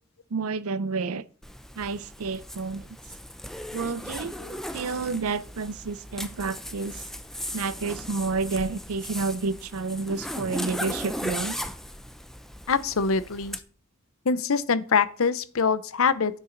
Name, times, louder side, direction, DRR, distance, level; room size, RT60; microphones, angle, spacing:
voice 1, 0.3-1.2 1.8-3.0 3.7-4.3 4.7-7.0 7.5-11.6, right 4 dB, 80° right, 0.5 m, -30 dB
Zipper (clothing), 1.4-13.6, equal, ahead, 0.5 m, -37 dB
voice 2, 12.7-13.6 14.3-16.4, left 5 dB, 70° left, 0.7 m, -24 dB
9.6 x 7.4 x 3.9 m
head